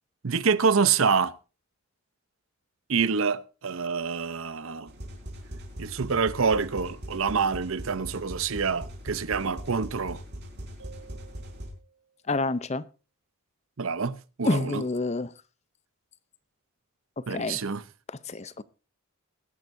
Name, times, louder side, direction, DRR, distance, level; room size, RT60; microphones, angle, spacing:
voice 1, 0.2-1.3 2.9-4.9 5.8-10.2 13.8-14.8 17.3-17.8, right 5 dB, 65° right, 0.7 m, -26 dB
sound 1, 4.9-11.7, equal, 50° right, 4.3 m, -40 dB
sound 2, 10.8-12.3, right 6 dB, 85° right, 3.7 m, -53 dB
voice 2, 12.3-12.8 14.4-15.3 17.3-17.6 18.1-18.6, left 2 dB, 30° left, 0.6 m, -28 dB
21.0 x 10.5 x 2.6 m
head